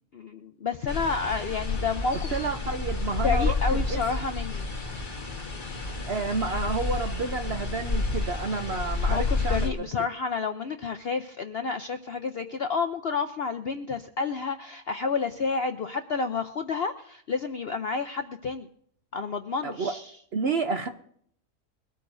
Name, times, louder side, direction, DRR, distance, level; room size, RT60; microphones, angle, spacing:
voice 1, 0.1-2.3 3.2-4.6 9.1-18.7 19.1-20.0, left 5 dB, 60° left, 7 dB, 0.6 m, -30 dB
sound 1, 0.9-9.7, left 3 dB, 30° left, 1.6 m, -30 dB
voice 2, 2.1-4.0 6.1-9.9 19.6-19.9 20.3-20.9, right 4 dB, 55° right, 7 dB, 0.8 m, -30 dB
22.5 x 13.5 x 2.6 m, 0.65 s
omnidirectional pair, 1.7 m